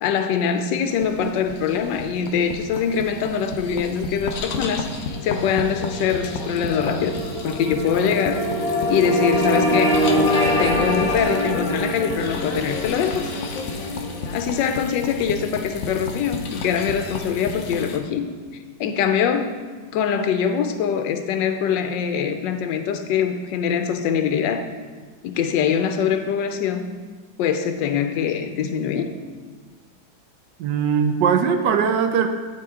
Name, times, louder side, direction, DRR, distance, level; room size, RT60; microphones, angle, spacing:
voice 1, 0.0-4.9 5.2-7.2 7.4-10.0 10.6-13.2 14.3-18.3 18.8-19.5 19.9-24.7 25.2-27.0 27.4-29.1, left 7 dB, 85° left, 7 dB, 1.3 m, -23 dB
sound 1, 0.9-18.0, left 3 dB, 60° left, 1.0 m, -32 dB
sound 2, 4.2-16.8, equal, 30° left, 1.5 m, -25 dB
voice 2, 30.6-32.3, right 7 dB, 75° right, 5 dB, 1.2 m, -20 dB
12.0 x 4.3 x 3.6 m, 1.5 s
omnidirectional pair, 1.9 m